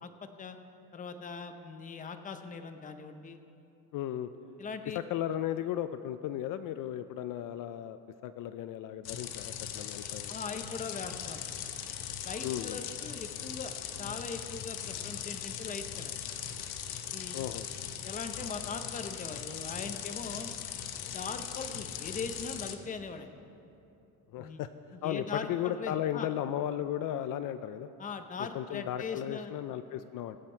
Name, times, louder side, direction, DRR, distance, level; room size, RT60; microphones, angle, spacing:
voice 1, 0.0-0.6 0.9-3.4 4.6-5.0 10.3-11.4 12.2-13.7 14.0-16.1 17.1-17.4 18.0-20.5 21.1-23.3 24.4-24.6 24.9-26.3 28.0-29.5, left 5 dB, 20° left, 7 dB, 0.7 m, -40 dB
voice 2, 3.9-4.3 5.1-10.3 12.4-12.8 17.3-17.7 24.3-24.7 25.0-27.9 28.4-30.4, left 11 dB, 60° left, 11 dB, 0.5 m, -35 dB
sound 1, 9.1-22.8, left 9 dB, 85° left, 1.0 m, -39 dB
21.5 x 7.5 x 4.5 m, 2.8 s
cardioid pair, 150°, 36 cm